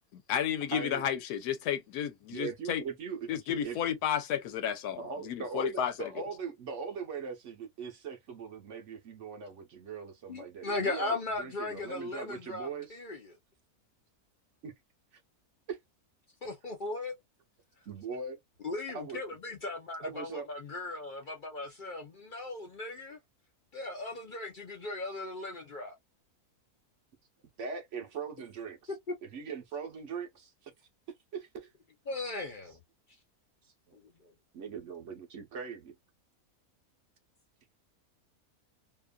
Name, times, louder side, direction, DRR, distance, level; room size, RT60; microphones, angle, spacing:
voice 1, 0.1-2.8 3.3-6.1, left 9 dB, 85° left, 1.2 m, -32 dB
voice 2, 0.7-1.1 2.3-3.3 3.6-3.8 5.0-13.0 14.6-14.7 15.1-15.2 15.7-15.8 17.9-18.4 18.9-19.2 20.0-20.5 27.6-28.9 29.2-30.7 31.3-31.7 33.6-34.0 34.5-35.9, right 5 dB, 60° right, 0.9 m, -40 dB
voice 3, 10.3-13.4 16.4-17.1 18.6-23.2 23.7-26.0 32.1-32.8 34.2-34.3, left 2 dB, 50° left, 0.6 m, -37 dB
2.8 x 2.4 x 2.2 m
omnidirectional pair, 1.6 m